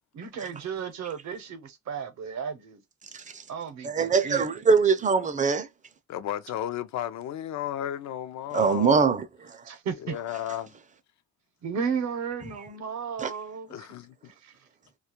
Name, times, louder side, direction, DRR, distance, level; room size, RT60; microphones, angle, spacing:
voice 1, 0.1-2.8 3.5-4.6 9.6-10.2 11.6-13.9 14.4-14.5, right 6 dB, 65° right, 0.7 m, -34 dB
voice 2, 3.8-5.7 8.5-9.6 13.2-13.3, right 5 dB, 25° right, 0.4 m, -23 dB
voice 3, 6.1-9.0 10.0-10.7 13.7-14.2, left 11 dB, 65° left, 0.4 m, -33 dB
2.3 x 2.1 x 2.8 m
cardioid pair, 90°, 30 cm